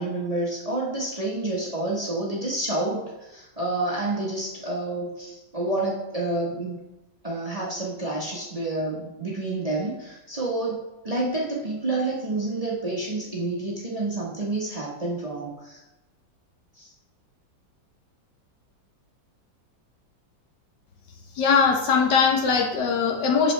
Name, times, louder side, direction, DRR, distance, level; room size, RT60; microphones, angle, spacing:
voice 1, 0.0-6.8 7.2-10.8 11.0-15.8 16.8-16.9, right 2 dB, 25° right, -4 dB, 1.0 m, -29 dB
voice 2, 21.4-23.5, left 5 dB, 65° left, 2 dB, 1.5 m, -21 dB
8.3 x 6.8 x 3.3 m, 0.98 s
omnidirectional pair, 2.1 m